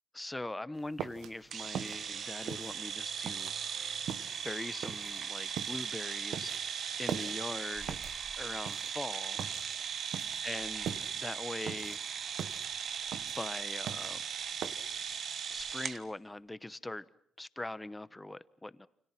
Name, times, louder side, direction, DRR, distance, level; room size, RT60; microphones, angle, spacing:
voice 1, 0.1-3.6 4.4-6.5 7.0-8.0 8.4-9.4 10.4-12.0 13.4-14.2 15.5-17.1 17.4-18.9, left 2 dB, 10° left, 1.0 m, -41 dB
sound 1, 0.8-15.1, right 8 dB, 75° right, 1.4 m, -43 dB
sound 2, 1.5-16.0, right 7 dB, 55° right, 1.4 m, -38 dB
29.0 x 25.5 x 5.9 m
cardioid pair, 90°, 0 cm